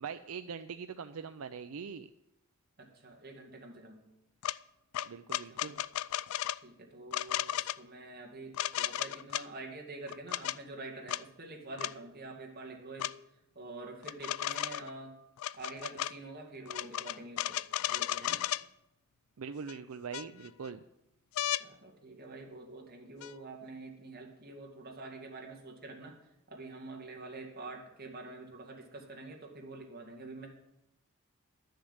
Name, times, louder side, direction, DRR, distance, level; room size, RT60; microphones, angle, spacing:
voice 1, 0.0-2.1 5.0-5.8 19.4-20.8, right 6 dB, 75° right, 9 dB, 0.5 m, -42 dB
voice 2, 2.8-4.0 5.5-5.8 6.6-13.1 13.6-15.1 15.6-17.6 17.9-18.4 21.6-26.2 26.5-30.5, right 2 dB, 45° right, 1 dB, 2.1 m, -46 dB
sound 1, 4.4-4.6 4.9-6.6 7.1-7.8 8.5-9.4 10.1-10.6 11.1-11.2 11.8-11.9 13.0-13.1 14.0-14.9 15.4-16.1 16.7-18.6 19.7-19.8 20.1-20.7 21.4-21.6 23.2-23.3, left 12 dB, 70° left, 0.3 m, -34 dB
11.5 x 6.5 x 7.9 m, 0.86 s
head